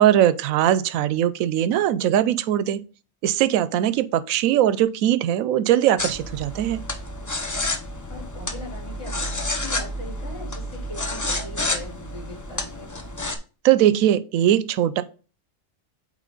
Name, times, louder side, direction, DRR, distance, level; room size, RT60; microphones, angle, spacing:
voice 1, 0.0-2.8 3.2-6.8 13.6-15.0, right 11 dB, 85° right, 1.0 m, -20 dB
sound 1, 6.0-13.4, left 1 dB, 25° left, 0.4 m, -30 dB
voice 2, 8.1-12.9, left 2 dB, 55° left, 4.1 m, -40 dB
8.3 x 3.6 x 3.9 m
omnidirectional pair, 1.4 m